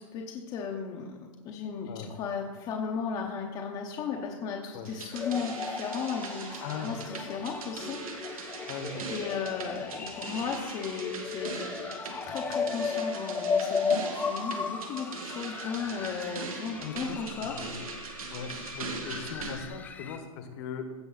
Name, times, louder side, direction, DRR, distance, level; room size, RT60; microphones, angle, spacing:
voice 1, 0.1-1.2 1.4-8.0 9.1-11.7 12.0-17.5, left 6 dB, 25° left, 0 dB, 0.9 m, -35 dB
sound 1, 4.9-19.7, right 5 dB, 85° right, 1.8 m, -41 dB
sound 2, 5.1-20.2, left 5 dB, 10° left, 0.5 m, -35 dB
voice 2, 6.5-7.0 8.7-9.0 14.0-14.2 16.8-17.8 18.3-20.9, left 6 dB, 45° left, 7 dB, 1.2 m, -40 dB
16.0 x 5.3 x 4.0 m, 1.4 s
hypercardioid pair, 150°, 18 cm